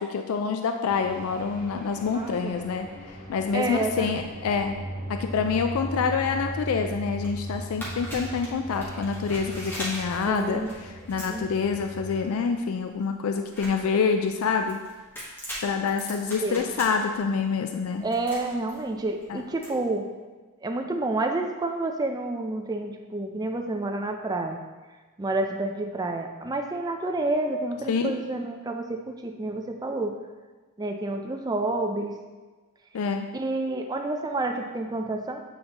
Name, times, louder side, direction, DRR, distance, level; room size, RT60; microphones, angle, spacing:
voice 1, 0.0-2.9 3.3-4.8 5.1-14.8 15.6-18.0 19.3-19.4 27.9-28.2 32.9-33.3, left 5 dB, 75° left, 6 dB, 0.4 m, -27 dB
sound 1, 0.9-12.3, right 1 dB, 35° left, 1.0 m, -38 dB
voice 2, 2.1-2.5 3.5-4.1 10.3-10.7 11.3-11.5 16.4-16.7 18.0-20.1 20.6-24.6 25.2-30.2 30.8-32.1 33.3-35.4, right 2 dB, 15° right, 4 dB, 0.4 m, -29 dB
sound 2, 7.1-19.7, equal, 10° left, 1.2 m, -41 dB
8.5 x 4.0 x 2.9 m, 1.3 s
head